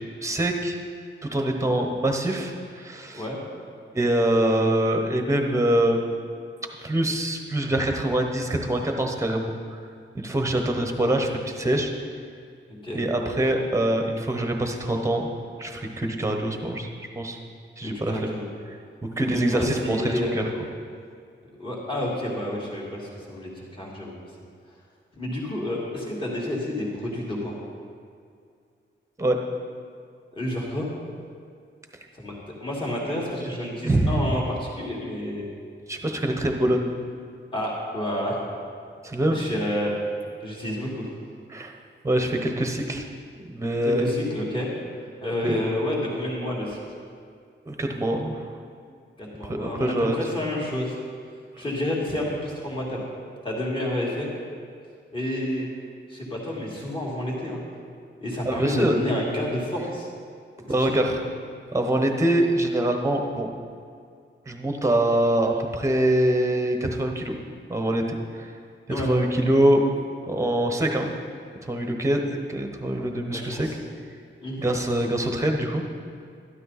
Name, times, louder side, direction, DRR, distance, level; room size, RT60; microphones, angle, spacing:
voice 1, 0.2-0.8 1.2-3.2 3.9-6.1 6.8-9.5 10.1-11.9 12.9-15.3 15.6-16.9 17.1-17.4 17.8-18.3 19.2-20.5 29.2-29.4 33.8-34.2 35.9-36.9 39.0-39.5 41.5-41.7 42.0-43.1 43.3-44.1 45.4-45.6 47.7-48.4 49.4-50.2 58.4-59.0 60.7-61.2 61.7-63.5 64.5-67.3 67.7-68.5 68.9-69.8 70.3-71.1 71.6-72.2 72.5-73.7 74.6-75.8, right 1 dB, 15° right, 3 dB, 1.1 m, -24 dB
voice 2, 12.7-13.0 17.8-18.5 19.2-20.3 21.6-24.2 25.2-27.6 30.3-30.9 32.1-32.3 32.6-35.5 37.5-38.4 39.3-39.9 40.4-41.1 43.8-44.7 45.2-46.8 49.2-50.9 51.6-53.0 53.4-54.3 55.1-55.7 56.1-57.6 58.2-60.1 60.7-61.1 68.9-69.1 73.3-73.7 74.4-74.6, left 1 dB, 25° left, -4 dB, 2.5 m, -29 dB
12.5 x 12.0 x 4.2 m, 2.3 s
wide cardioid pair, 175°, 20 cm